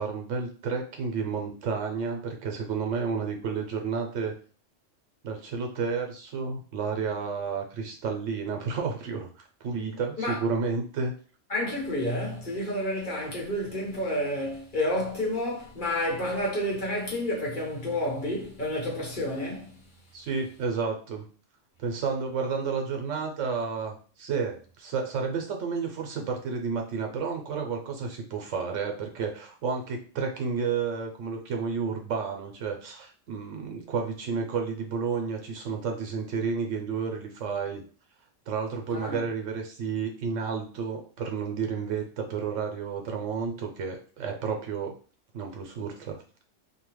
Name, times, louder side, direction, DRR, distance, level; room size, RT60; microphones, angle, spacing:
voice 1, 0.0-4.4 5.2-9.3 9.6-11.1 20.1-21.3 21.8-37.8 38.5-45.0 45.3-46.2, right 5 dB, 80° right, 1.0 m, -31 dB
voice 2, 11.5-19.7 38.9-39.2, left 1 dB, 45° left, 1.0 m, -30 dB
2.8 x 2.2 x 3.0 m
omnidirectional pair, 1.3 m